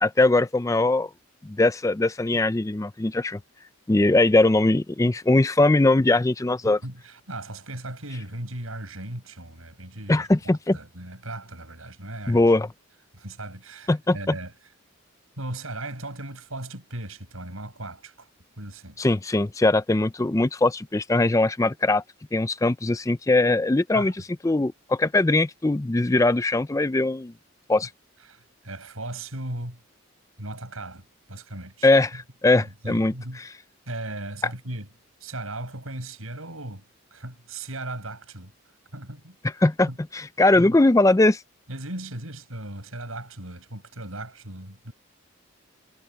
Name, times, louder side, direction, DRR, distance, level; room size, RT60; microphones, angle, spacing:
voice 1, 0.0-1.1 1.4-3.4 3.9-6.8 10.1-10.8 12.3-12.7 13.9-14.3 19.0-22.0 22.3-24.1 24.4-27.3 27.7-27.9 31.8-33.1 39.6-41.4, left 2 dB, 15° left, 0.4 m, -21 dB
voice 2, 6.6-10.3 10.7-12.5 13.1-14.5 15.4-18.3 18.6-19.0 23.9-24.1 27.8-27.9 28.3-29.8 30.4-32.2 32.6-33.5 33.9-34.9 35.2-38.5 38.9-39.4 39.9-40.0 40.5-40.8 41.7-44.9, right 1 dB, 80° right, 7.8 m, -37 dB
head